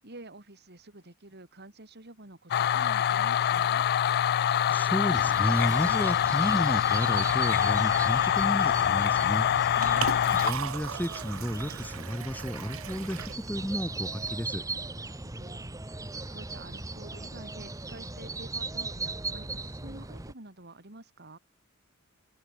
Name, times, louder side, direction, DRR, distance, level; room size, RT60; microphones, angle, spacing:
voice 1, 0.0-3.9 9.7-10.6 15.0-21.4, right 2 dB, 50° right, 3.5 m, -49 dB
sound 1, 2.5-10.5, left 10 dB, 50° left, 0.3 m, -25 dB
voice 2, 4.7-9.5 10.4-14.6, equal, 10° left, 1.6 m, -32 dB
sound 2, 5.1-20.3, right 3 dB, 15° right, 1.2 m, -38 dB
Liquid, 9.5-14.5, right 7 dB, 75° right, 0.9 m, -39 dB
head